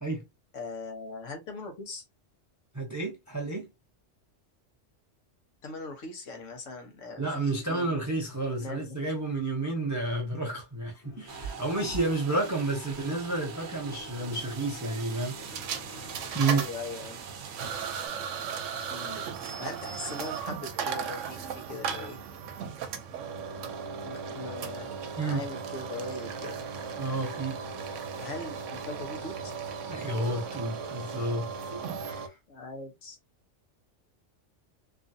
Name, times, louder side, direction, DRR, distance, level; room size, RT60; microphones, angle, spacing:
voice 1, 0.5-2.0 5.6-7.9 8.6-9.0 16.4-17.2 18.9-22.2 23.6-24.9 25.2-26.6 28.2-29.5 32.5-33.2, left 3 dB, 85° left, 1.2 m, -40 dB
voice 2, 2.7-3.7 7.2-15.4 16.3-16.6 25.2-25.4 27.0-27.6 29.9-32.4, right 2 dB, 25° right, 0.4 m, -31 dB
sound 1, 11.0-16.4, right 1 dB, 45° left, 1.3 m, -46 dB
sound 2, 11.3-18.1, right 6 dB, 65° right, 0.9 m, -44 dB
sound 3, 15.4-32.3, right 6 dB, 90° right, 0.9 m, -36 dB
3.0 x 2.4 x 2.6 m
omnidirectional pair, 1.3 m